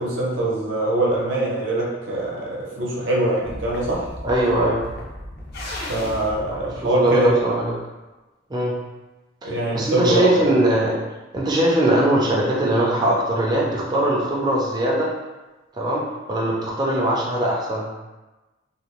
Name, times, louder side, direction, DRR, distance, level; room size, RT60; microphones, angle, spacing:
voice 1, 0.0-4.1 5.9-7.4 9.4-10.4, right 1 dB, 90° right, -4 dB, 0.7 m, -23 dB
sound 1, 3.4-7.6, left 1 dB, 55° left, 0.5 m, -36 dB
voice 2, 4.2-4.8 6.9-7.7 8.5-8.8 9.4-11.0 11.3-15.1 15.8-16.0 16.3-17.9, right 1 dB, 20° right, -4 dB, 0.4 m, -20 dB
2.5 x 2.0 x 3.0 m, 1.1 s
head